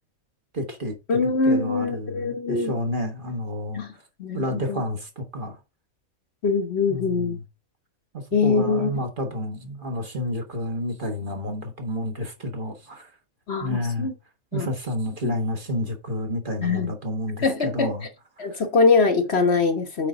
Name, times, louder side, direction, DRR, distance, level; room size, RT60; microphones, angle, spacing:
voice 1, 0.5-4.0 4.3-5.6 6.9-7.4 8.1-13.1 13.6-14.1 14.5-18.0, left 1 dB, 40° right, 1.6 m, -30 dB
voice 2, 1.1-2.7 3.7-3.9 4.2-4.8 6.4-7.4 8.3-8.9 13.5-14.1 14.5-14.7 15.2-15.3 16.6-16.9 17.4-17.9 18.4-20.1, left 4 dB, 50° left, 1.3 m, -23 dB
8.7 x 3.9 x 5.0 m
omnidirectional pair, 1.5 m